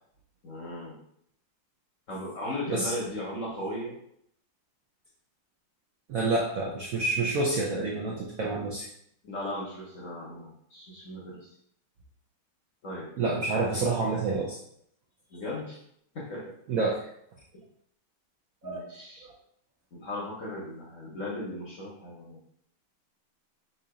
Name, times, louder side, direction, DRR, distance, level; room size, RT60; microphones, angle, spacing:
voice 1, 0.4-1.0 2.1-3.9 9.2-11.5 12.8-13.1 15.3-15.8 16.1-16.5 17.5-17.6 18.6-19.2 19.9-22.4, left 1 dB, 55° left, -4 dB, 0.9 m, -37 dB
voice 2, 6.1-8.9 13.2-14.6 16.7-17.0 18.6-18.8, right 3 dB, 75° right, -1 dB, 0.7 m, -28 dB
3.8 x 2.8 x 4.8 m, 0.70 s
omnidirectional pair, 2.3 m